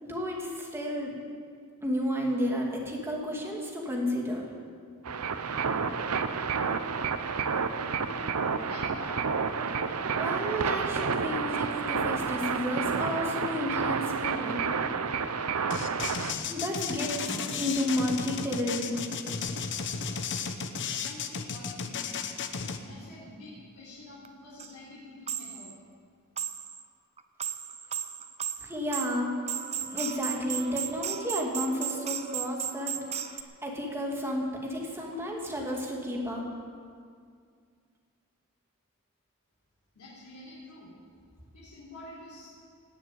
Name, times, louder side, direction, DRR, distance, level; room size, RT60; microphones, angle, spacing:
voice 1, 0.0-1.1 1.8-4.5 10.1-14.7 16.3-19.0 28.6-29.3 29.9-36.4, equal, 10° right, -2 dB, 2.4 m, -32 dB
sound 1, 5.0-16.3, right 5 dB, 75° right, 0.7 m, -30 dB
voice 2, 8.6-9.2 21.0-22.1 22.8-25.7 39.9-40.9 41.5-42.5, left 2 dB, 85° left, -7 dB, 3.7 m, -47 dB
sound 2, 15.7-22.8, left 6 dB, 55° left, 0.9 m, -34 dB
sound 3, 24.2-24.3 24.6-24.7 25.3-25.7 26.4-26.8 27.2-33.4, right 8 dB, 30° right, 0.6 m, -35 dB
17.0 x 7.4 x 9.2 m, 2.2 s
head